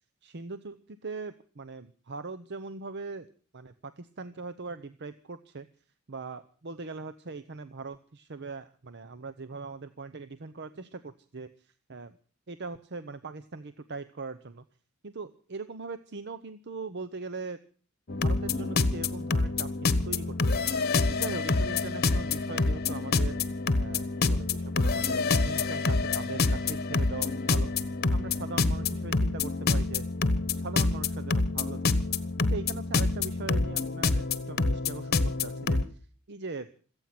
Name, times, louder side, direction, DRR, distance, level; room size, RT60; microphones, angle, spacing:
voice 1, 0.2-3.3 3.5-5.7 6.1-12.2 12.5-14.6 15.0-17.6 18.2-20.7 21.1-23.5 23.8-27.7 28.1-30.1 30.5-31.9 32.4-36.0 36.3-36.7, right 3 dB, 50° right, 12 dB, 0.8 m, -40 dB
sound 1, 18.1-35.8, left 3 dB, 45° left, 1.1 m, -27 dB
27.0 x 8.9 x 5.9 m, 0.41 s
head